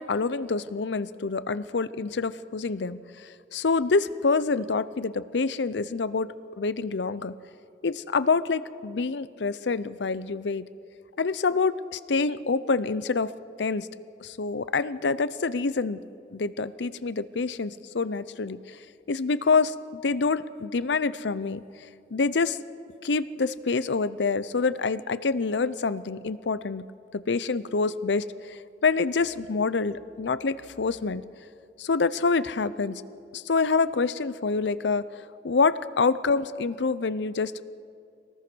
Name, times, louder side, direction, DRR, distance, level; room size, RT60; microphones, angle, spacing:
voice 1, 0.0-6.3 6.6-7.3 7.8-10.7 11.2-13.3 13.6-13.9 14.2-16.0 16.3-18.8 19.1-21.6 22.1-22.6 23.0-26.8 27.1-31.2 31.8-33.0 33.3-35.0 35.4-37.5, left 4 dB, 90° left, 16 dB, 0.6 m, -26 dB
24.0 x 19.0 x 6.2 m, 2.5 s
head